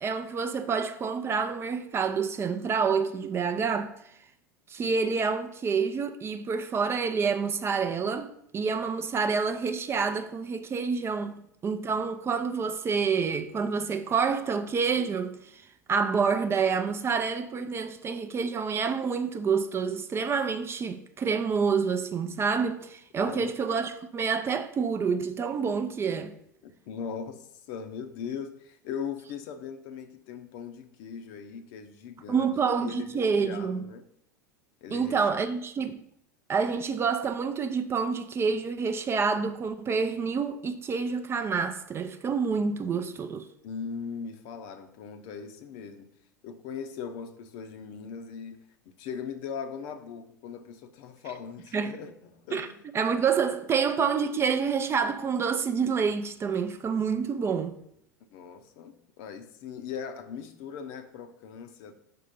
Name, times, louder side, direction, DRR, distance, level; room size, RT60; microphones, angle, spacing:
voice 1, 0.0-3.9 4.7-15.5 15.9-26.4 32.3-33.8 34.9-36.0 36.5-43.5 51.7-51.9 52.5-52.7 52.9-57.8, right 5 dB, 25° right, 0.5 m, -28 dB
voice 2, 23.2-23.5 26.6-34.0 34.8-35.5 43.6-46.1 46.4-48.6 49.0-52.8 58.3-61.9, left 6 dB, 55° left, 0.7 m, -39 dB
5.7 x 3.8 x 5.4 m
hypercardioid pair, 85°, 10 cm